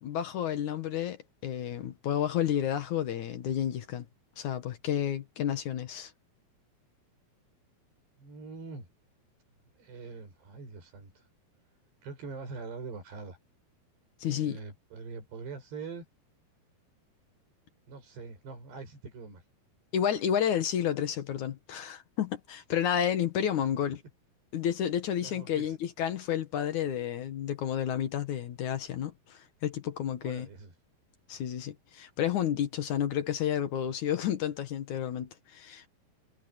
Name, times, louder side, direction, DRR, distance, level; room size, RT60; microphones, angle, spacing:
voice 1, 0.0-4.1 4.4-6.1 14.2-14.6 19.9-24.0 24.5-30.5 31.3-35.9, left 10 dB, 60° left, 2.2 m, -31 dB
voice 2, 8.2-8.9 9.8-11.3 12.0-13.4 14.3-16.1 17.9-19.4 25.2-25.8 30.2-30.7, right 4 dB, 85° right, 9.2 m, -43 dB
omnidirectional pair, 4.7 m